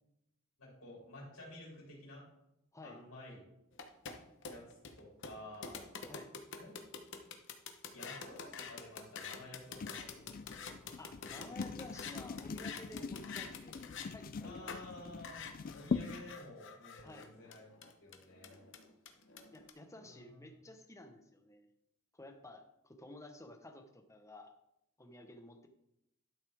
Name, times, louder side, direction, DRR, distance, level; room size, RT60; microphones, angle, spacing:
voice 1, 0.6-2.3 2.8-3.5 4.5-5.8 6.6-6.8 7.9-10.2 14.4-15.5 15.7-18.6 19.9-20.4, left 1 dB, 85° left, -4 dB, 3.6 m, -52 dB
sound 1, 3.7-14.1 14.7-14.8 15.2-19.7, left 6 dB, 60° left, 1.0 m, -47 dB
sound 2, 9.7-16.3, left 5 dB, 40° left, 0.4 m, -43 dB
voice 2, 11.0-13.8 14.1-14.8 17.0-17.3 19.5-21.7 22.1-24.5 25.0-25.7, left 1 dB, 15° left, 5 dB, 0.9 m, -53 dB
12.0 x 6.4 x 3.5 m, 0.83 s
head